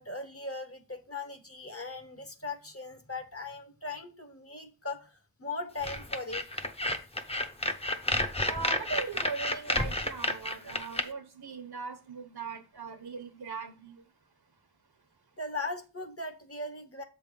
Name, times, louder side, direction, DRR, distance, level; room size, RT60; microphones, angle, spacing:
voice 1, 0.0-6.7 15.4-17.0, left 3 dB, 35° left, 1.0 m, -39 dB
sound 1, 5.8-11.0, left 1 dB, 15° left, 0.7 m, -30 dB
voice 2, 8.4-14.1, right 5 dB, 70° right, 0.9 m, -39 dB
7.4 x 3.4 x 5.3 m
wide cardioid pair, 50°, 39 cm